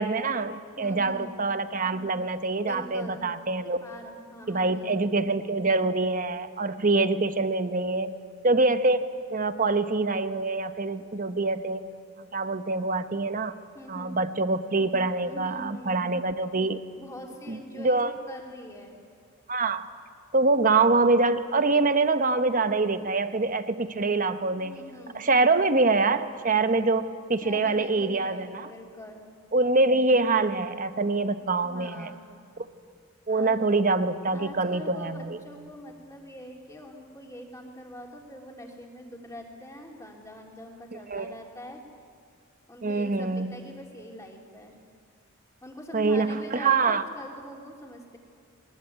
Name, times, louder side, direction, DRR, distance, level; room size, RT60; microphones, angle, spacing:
voice 1, 0.0-3.8 4.5-8.1 8.4-11.8 12.2-13.5 13.9-16.8 17.5-18.1 19.5-19.9 20.3-24.8 25.1-28.7 29.5-32.1 33.3-35.4 40.9-41.4 42.8-43.6 45.9-47.0, right 3 dB, 40° right, 10 dB, 1.0 m, -25 dB
voice 2, 0.8-1.4 2.6-3.3 3.8-5.0 13.7-14.2 15.2-16.0 17.0-19.0 24.6-25.3 27.4-29.3 31.6-32.2 33.3-33.6 34.3-41.8 42.7-44.8 45.6-48.2, equal, 15° left, 0 dB, 3.1 m, -43 dB
22.0 x 20.5 x 9.5 m, 2.3 s
head